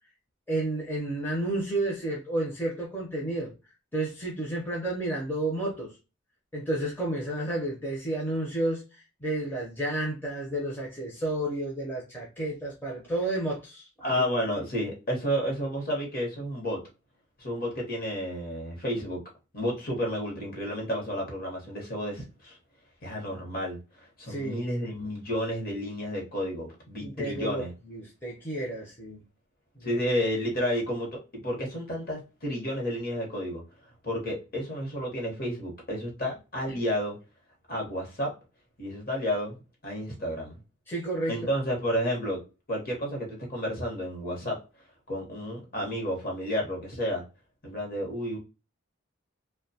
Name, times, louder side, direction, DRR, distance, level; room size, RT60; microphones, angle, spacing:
voice 1, 0.5-3.5 3.9-6.0 6.5-14.2 24.2-24.6 27.0-29.2 29.8-30.0 36.7-36.8 40.9-41.4, right 1 dB, 10° left, 0.5 m, -31 dB
voice 2, 14.0-16.8 17.4-19.2 19.5-22.6 23.0-27.7 29.8-33.6 34.0-37.2 37.7-38.3 38.8-39.6 39.8-40.6 41.3-42.4 42.7-44.6 45.1-47.2 47.6-48.4, equal, 45° left, 0.9 m, -31 dB
2.5 x 2.2 x 2.6 m
head